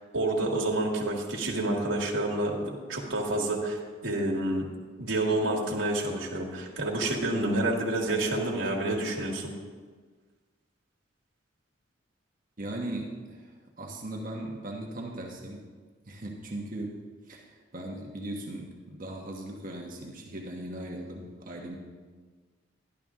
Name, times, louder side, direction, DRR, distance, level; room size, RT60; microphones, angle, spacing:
voice 1, 0.1-4.7 5.0-9.5, right 2 dB, 80° right, -2 dB, 1.6 m, -28 dB
voice 2, 12.6-15.6 16.1-17.0 17.3-21.8, right 1 dB, 45° right, 0 dB, 1.2 m, -38 dB
12.5 x 11.0 x 3.7 m, 1.5 s
head